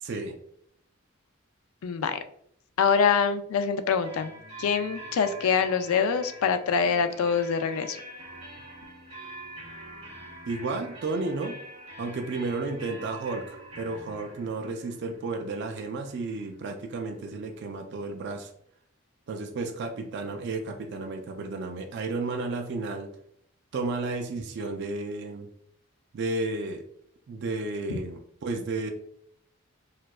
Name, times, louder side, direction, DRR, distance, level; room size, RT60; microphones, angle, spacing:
voice 1, 0.0-0.4 10.5-11.5 12.0-18.5 19.3-23.1 23.7-25.5 26.1-26.8 27.3-28.9, right 3 dB, 55° right, 4 dB, 0.4 m, -32 dB
voice 2, 1.8-2.2 2.8-4.3 4.6-8.0, left 6 dB, 85° left, 10 dB, 0.4 m, -25 dB
sound 1, 4.0-17.6, right 1 dB, 30° right, 1.4 m, -45 dB
4.4 x 2.3 x 2.2 m, 0.69 s
head